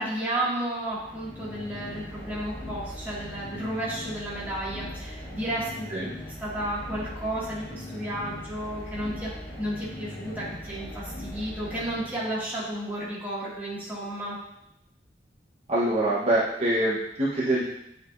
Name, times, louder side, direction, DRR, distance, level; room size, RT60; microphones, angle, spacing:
voice 1, 0.0-5.9 6.4-9.3 9.6-14.4, right 1 dB, 10° right, -8 dB, 2.1 m, -32 dB
sound 1, 0.9-12.7, left 1 dB, 10° left, 1.7 m, -40 dB
voice 2, 15.7-17.6, right 1 dB, 35° right, -9 dB, 1.1 m, -24 dB
8.9 x 4.9 x 2.6 m, 0.80 s
head